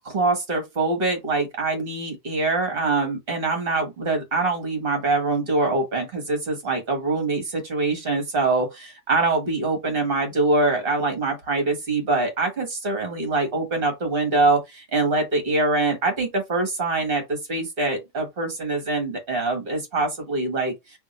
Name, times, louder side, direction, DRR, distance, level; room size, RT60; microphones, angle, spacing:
voice 1, 0.0-20.7, right 3 dB, 45° right, 1.5 m, -24 dB
3.5 x 2.6 x 4.0 m
omnidirectional pair, 1.4 m